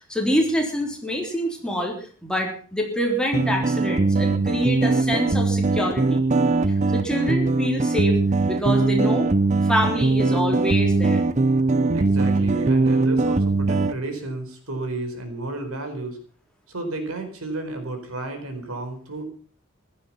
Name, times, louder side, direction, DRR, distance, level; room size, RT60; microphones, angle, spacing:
voice 1, 0.1-6.2 6.9-8.2 8.5-9.3 9.7-11.2, equal, 5° left, 0 dB, 3.7 m, -26 dB
sound 1, 3.3-13.9, right 3 dB, 35° right, 0.6 m, -21 dB
voice 2, 11.9-16.2 16.7-19.2, right 2 dB, 85° right, 6 dB, 4.4 m, -32 dB
15.5 x 12.5 x 5.7 m, 0.44 s
head